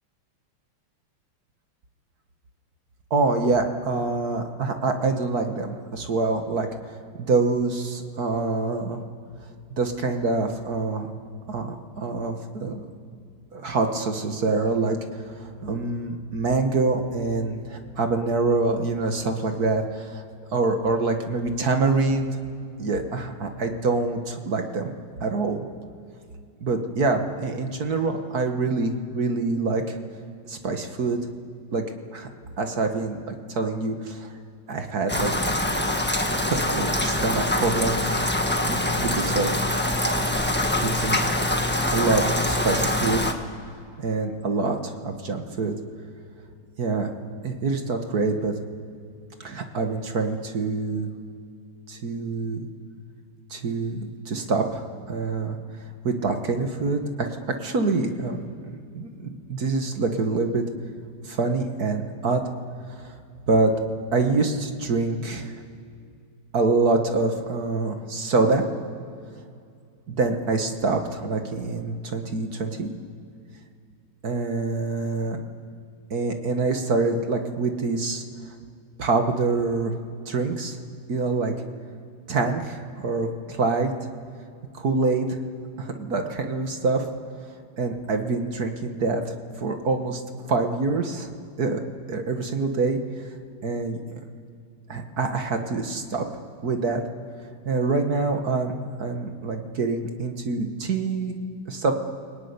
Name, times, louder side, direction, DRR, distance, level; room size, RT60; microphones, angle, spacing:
voice 1, 3.1-9.0 9.7-11.1 11.5-12.9 13.5-15.0 15.3-20.2 20.5-22.4 22.8-25.0 25.2-25.7 26.6-30.0 30.5-31.2 31.7-31.8 32.1-32.3 32.6-34.3 34.7-35.3 36.3-38.1 38.6-39.5 40.8-41.2 41.9-43.2 44.0-45.8 46.8-47.1 47.4-48.5 49.4-51.1 51.9-52.7 53.5-55.6 56.0-60.6 61.3-62.4 63.0-63.1 63.5-63.7 64.1-65.5 66.5-68.7 70.1-72.9 74.2-75.4 76.1-78.2 79.0-79.9 80.3-80.8 81.1-81.5 82.3-83.9 84.7-85.4 85.8-87.0 87.8-89.2 89.6-91.3 91.6-91.8 92.1-93.0 93.6-94.0 94.9-96.3 96.6-97.0 97.7-101.3 101.7-101.9, right 3 dB, 50° right, 5 dB, 1.9 m, -25 dB
Rain, 35.1-43.3, left 1 dB, 5° left, 1.1 m, -24 dB
29.5 x 18.5 x 9.7 m, 2.4 s
omnidirectional pair, 2.3 m